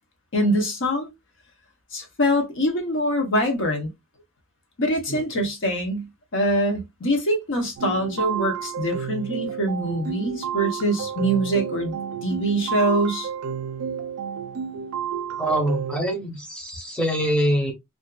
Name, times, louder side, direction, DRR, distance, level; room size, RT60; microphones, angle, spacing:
voice 1, 0.3-1.1 1.9-3.9 4.8-12.0 12.2-13.3, equal, 60° left, 0.8 m, -24 dB
voice 2, 5.1-5.4 15.4-17.7, right 1 dB, 5° left, 0.7 m, -25 dB
sound 1, 7.8-16.0, right 7 dB, 80° right, 0.4 m, -31 dB
2.5 x 2.4 x 2.2 m
head